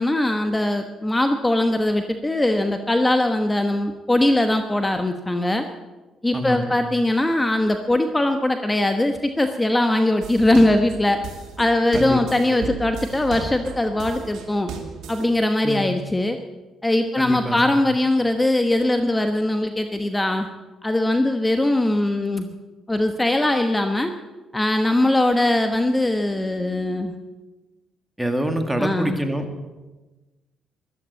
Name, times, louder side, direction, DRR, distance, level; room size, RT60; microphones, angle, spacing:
voice 1, 0.0-5.6 6.2-11.2 11.6-14.7 15.1-16.4 16.8-20.5 20.8-22.5 22.9-24.1 24.5-27.2 28.8-29.2, left 1 dB, 15° left, 6 dB, 1.1 m, -21 dB
voice 2, 6.3-6.8 11.9-12.2 15.6-16.0 17.2-17.8 28.2-29.5, equal, 5° right, 5 dB, 2.1 m, -25 dB
sound 1, 10.2-15.3, right 5 dB, 80° right, 2.5 m, -35 dB
13.5 x 12.5 x 8.3 m, 1.2 s
cardioid pair, 90°, 0 cm